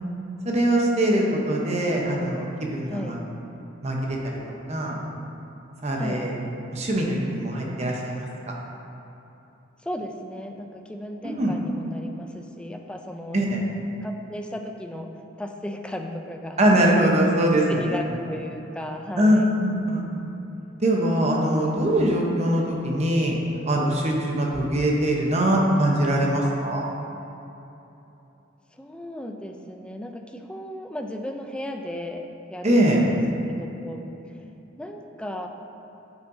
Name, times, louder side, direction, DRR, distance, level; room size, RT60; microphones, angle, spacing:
voice 1, 0.4-3.2 3.8-4.2 4.5-5.0 5.8-6.3 6.7-8.5 11.2-11.5 13.3-13.6 16.6-17.9 19.2-20.0 20.8-23.4 23.7-26.8 32.6-33.1, right 1 dB, 35° right, -2 dB, 0.9 m, -22 dB
voice 2, 2.9-3.2 6.0-6.3 9.8-13.4 14.0-15.1 15.4-16.6 17.7-19.5 28.7-33.2 33.4-34.0 34.8-35.5, left 1 dB, 5° left, 3 dB, 0.3 m, -35 dB
9.1 x 5.5 x 2.7 m, 3.0 s
head